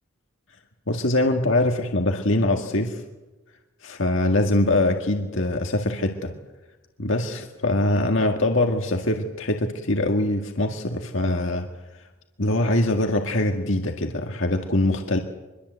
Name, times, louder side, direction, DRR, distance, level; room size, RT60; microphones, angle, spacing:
voice 1, 0.9-3.0 3.8-6.3 7.0-11.7 12.4-15.2, left 1 dB, 65° left, 3 dB, 1.9 m, -23 dB
25.0 x 22.5 x 8.1 m, 1.1 s
head